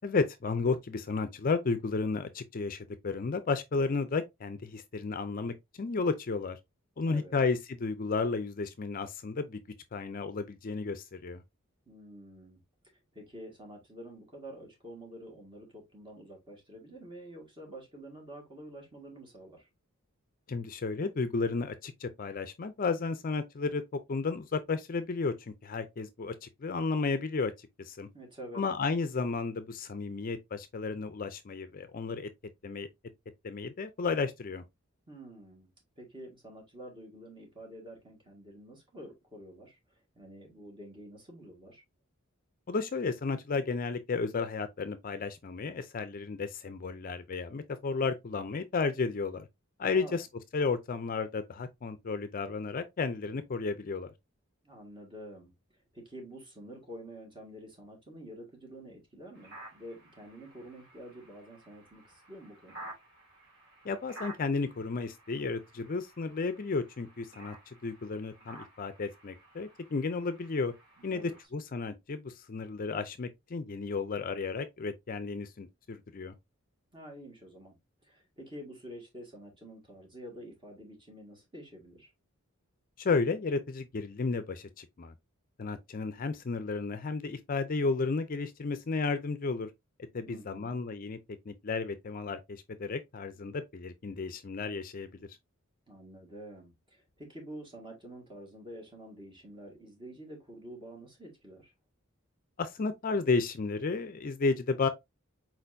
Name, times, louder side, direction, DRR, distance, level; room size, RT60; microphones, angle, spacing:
voice 1, 0.0-6.6 7.0-9.6 9.9-11.4 20.5-28.1 28.5-32.3 32.6-32.9 33.4-34.6 42.7-49.5 49.8-50.3 50.5-54.1 63.8-70.7 71.0-76.3 83.0-85.1 85.6-89.7 90.1-91.2 91.5-95.1 102.6-104.9, left 4 dB, 40° left, 0.4 m, -33 dB
voice 2, 7.1-7.5 11.9-12.6 13.1-19.7 28.1-28.6 35.1-35.7 36.0-39.8 40.2-41.8 49.9-50.2 54.6-55.5 55.9-62.8 71.0-71.3 76.9-77.8 78.0-82.1 90.3-90.8 95.9-101.7, right 1 dB, 25° right, 1.8 m, -48 dB
sound 1, 59.3-71.4, right 1 dB, 50° right, 2.6 m, -52 dB
4.4 x 4.2 x 2.6 m
head